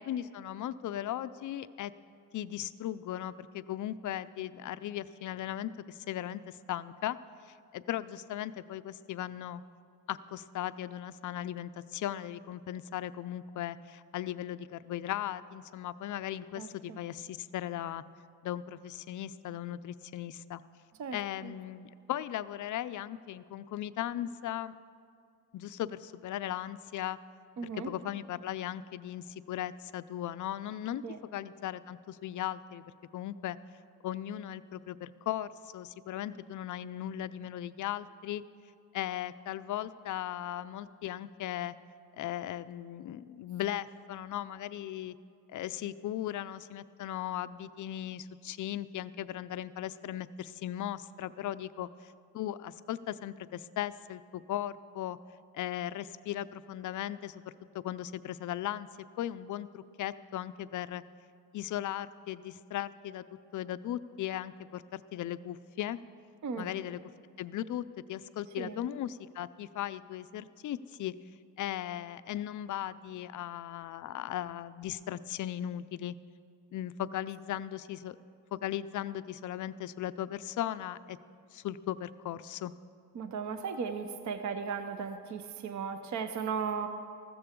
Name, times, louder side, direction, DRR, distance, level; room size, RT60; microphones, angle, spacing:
voice 1, 0.0-1.9 2.3-7.2 7.5-9.6 10.1-18.0 18.4-20.6 21.1-24.8 25.5-27.2 27.8-31.0 31.3-32.8 33.1-33.6 34.0-38.4 38.9-41.7 42.2-45.2 45.5-55.2 55.5-57.4 57.8-58.9 59.2-61.0 61.5-63.2 63.5-66.0 66.6-67.0 67.4-67.8 68.1-71.1 71.6-76.1 76.7-78.2 78.5-81.2 81.5-82.7, left 12 dB, 45° left, 14 dB, 0.4 m, -37 dB
voice 2, 16.6-17.0 21.0-21.5 27.6-27.9 31.0-31.2 66.4-66.7 68.6-68.8 83.1-86.9, right 6 dB, 45° right, 9 dB, 0.7 m, -36 dB
15.0 x 13.5 x 3.7 m, 2.4 s
cardioid pair, 105°, 43 cm